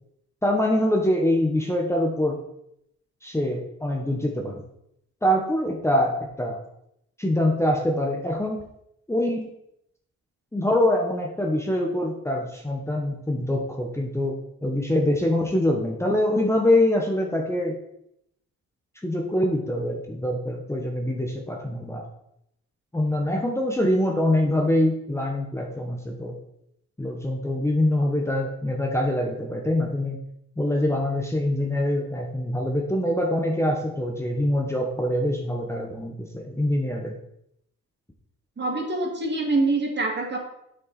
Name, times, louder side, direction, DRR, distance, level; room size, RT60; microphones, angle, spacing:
voice 1, 0.4-2.4 3.2-4.6 5.2-6.6 7.2-8.6 9.1-9.5 10.5-14.3 14.6-17.8 19.0-22.1 22.9-26.4 27.0-30.2 30.6-37.2, left 1 dB, 10° left, 1 dB, 1.1 m, -24 dB
voice 2, 38.6-40.4, right 2 dB, 35° right, 1 dB, 2.2 m, -25 dB
7.8 x 6.2 x 4.2 m, 0.78 s
cardioid pair, 90°, 30 cm